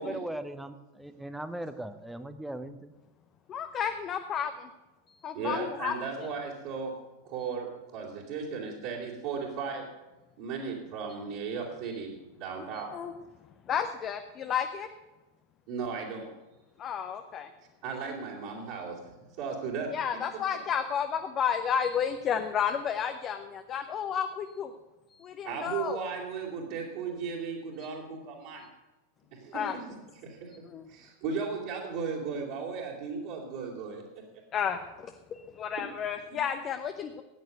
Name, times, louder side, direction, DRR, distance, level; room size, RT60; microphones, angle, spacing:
voice 1, 0.0-2.9, right 1 dB, 5° right, 10 dB, 1.0 m, -39 dB
voice 2, 3.5-4.7 5.1-6.3 12.7-13.1 13.7-14.9 16.8-17.5 19.9-24.7 25.1-26.0 29.5-29.8 30.6-30.9 34.5-37.2, left 8 dB, 30° left, 7 dB, 0.9 m, -32 dB
voice 3, 5.3-6.9 7.2-9.8 10.4-12.9 15.7-16.3 17.8-19.0 19.4-19.9 25.4-28.7 29.3-29.6 30.2-30.5 30.9-34.0, right 5 dB, 50° right, -5 dB, 3.1 m, -36 dB
16.0 x 9.5 x 6.7 m, 1.1 s
figure-of-eight pair, 90°, 0 cm